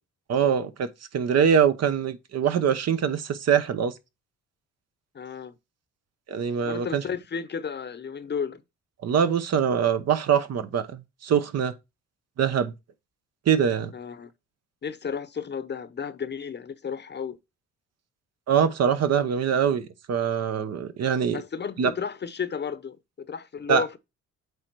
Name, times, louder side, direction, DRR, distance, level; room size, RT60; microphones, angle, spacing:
voice 1, 0.3-0.9 1.1-3.9 6.3-7.0 9.0-11.7 12.4-12.7 13.5-13.9 18.5-21.4 21.8-21.9 23.7-23.8, right 7 dB, 60° right, 0.9 m, -23 dB
voice 2, 5.1-5.5 6.6-8.6 13.9-14.3 14.8-17.4 21.3-24.0, left 6 dB, 35° left, 0.8 m, -33 dB
8.2 x 3.4 x 4.5 m
cardioid pair, 90°, 30 cm